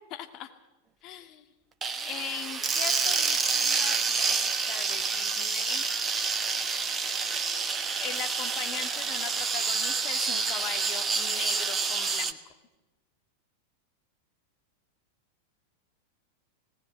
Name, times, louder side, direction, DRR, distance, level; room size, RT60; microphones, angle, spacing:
voice 1, 0.1-0.5 1.0-1.5 2.0-4.4 4.7-5.9 8.0-12.4, left 11 dB, 40° left, 5 dB, 2.2 m, -39 dB
sound 1, 1.8-12.3, right 5 dB, 20° right, 1.2 m, -28 dB
19.5 x 18.5 x 8.0 m, 1.1 s
figure-of-eight pair, 90°, 0 cm